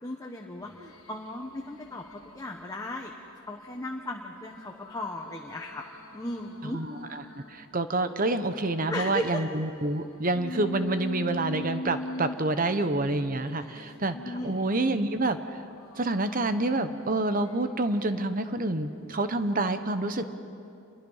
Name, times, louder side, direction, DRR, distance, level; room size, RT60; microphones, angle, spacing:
voice 1, 0.0-3.1 3.5-5.8 6.1-6.8 8.9-9.4 13.6-14.0 14.2-14.6, left 1 dB, 15° left, 1 dB, 1.1 m, -36 dB
sound 1, 0.6-2.7 3.1-7.6 8.1-15.1 15.6-18.5 19.0-19.3, left 1 dB, 75° left, 1.5 m, -43 dB
voice 2, 7.5-15.4 15.9-20.3, right 2 dB, 40° right, 10 dB, 1.0 m, -28 dB
28.0 x 22.5 x 5.7 m, 2.7 s
head